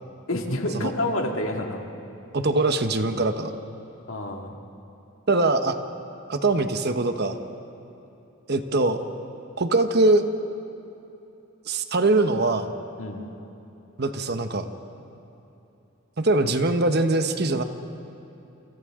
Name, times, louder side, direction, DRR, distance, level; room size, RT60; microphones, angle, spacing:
voice 1, 0.3-1.8 4.1-4.5 13.0-13.2, left 1 dB, 70° left, 2 dB, 2.1 m, -28 dB
voice 2, 2.3-3.5 5.3-5.8 6.3-7.4 8.5-9.0 9.6-10.3 11.7-12.7 14.0-14.7 16.2-17.6, right 2 dB, 50° right, 8 dB, 1.0 m, -22 dB
28.5 x 27.0 x 3.7 m, 2.9 s
head